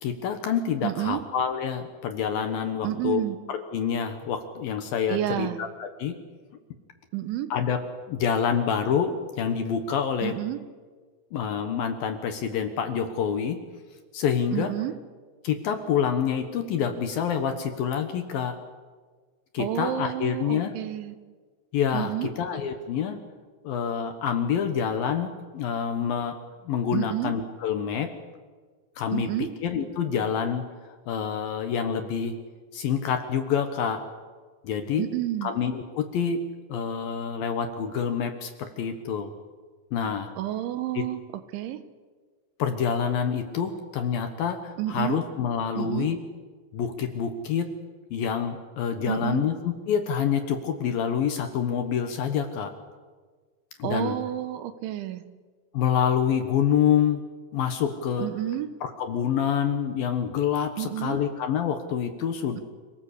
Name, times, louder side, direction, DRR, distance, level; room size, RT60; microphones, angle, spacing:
voice 1, 0.0-3.2 3.5-6.2 7.5-7.8 8.1-10.4 11.3-13.6 14.1-14.7 15.4-18.6 19.5-20.7 21.7-23.2 23.6-26.4 26.6-28.1 29.0-32.4 32.7-34.0 34.6-35.1 35.4-39.3 39.9-40.3 40.9-41.1 42.6-46.2 46.7-47.7 48.1-52.7 53.8-54.1 55.7-57.2 57.5-58.3 58.8-62.6, left 7 dB, 65° left, 7 dB, 2.5 m, -27 dB
voice 2, 0.8-1.2 2.8-3.4 5.1-5.6 7.1-7.5 10.2-10.6 14.5-14.9 19.6-21.2 21.9-22.3 26.9-27.3 29.1-29.5 35.0-35.5 40.4-41.2 41.5-41.8 44.8-45.2 45.8-46.1 49.1-49.5 53.8-55.2 58.2-58.7 60.8-61.2, right 13 dB, 85° right, 11 dB, 3.6 m, -30 dB
27.0 x 18.5 x 8.4 m, 1.5 s
omnidirectional pair, 5.4 m